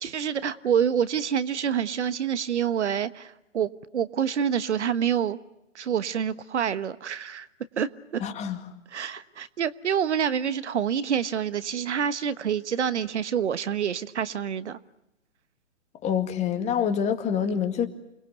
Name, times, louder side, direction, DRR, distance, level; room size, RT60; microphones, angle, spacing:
voice 1, 0.0-5.4 5.7-7.5 7.8-8.2 8.9-14.8, right 8 dB, 65° right, 14 dB, 1.3 m, -27 dB
voice 2, 8.2-8.6 16.0-17.9, left 8 dB, 20° left, 7 dB, 2.1 m, -26 dB
29.0 x 21.0 x 8.1 m, 0.89 s
hypercardioid pair, 130°, 37 cm